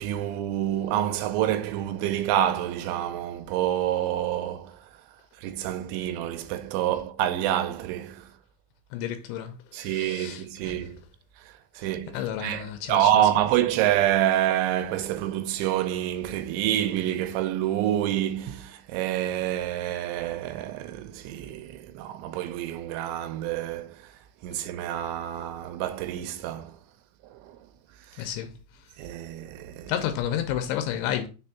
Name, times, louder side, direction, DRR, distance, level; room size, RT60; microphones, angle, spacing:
voice 1, 0.0-4.7 5.4-8.2 9.7-11.0 11.8-23.9 24.4-26.7 29.0-29.9, right 12 dB, 85° right, 3.0 m, -27 dB
voice 2, 8.9-10.9 12.1-13.1 28.2-28.5 29.9-31.3, left 10 dB, 90° left, 3.0 m, -31 dB
6.8 x 3.5 x 5.6 m
omnidirectional pair, 5.3 m